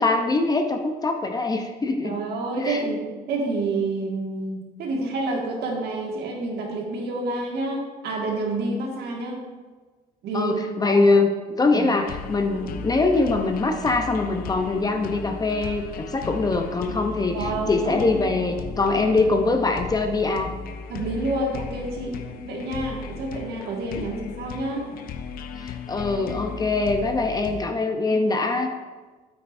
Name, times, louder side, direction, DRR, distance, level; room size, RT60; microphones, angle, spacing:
voice 1, 0.0-2.1 2.6-2.8 10.3-11.3 11.6-20.5 24.0-24.1 25.6-28.7, left 3 dB, 20° left, 5 dB, 0.7 m, -23 dB
voice 2, 2.0-9.4 10.2-11.1 11.7-11.9 12.5-12.6 17.3-18.3 20.9-22.2 22.5-24.9 28.1-28.2, right 2 dB, 70° right, -1 dB, 1.9 m, -29 dB
sound 1, 12.0-27.6, left 6 dB, 60° left, 0.6 m, -36 dB
9.1 x 8.4 x 2.7 m, 1.3 s
cardioid pair, 110°, 17 cm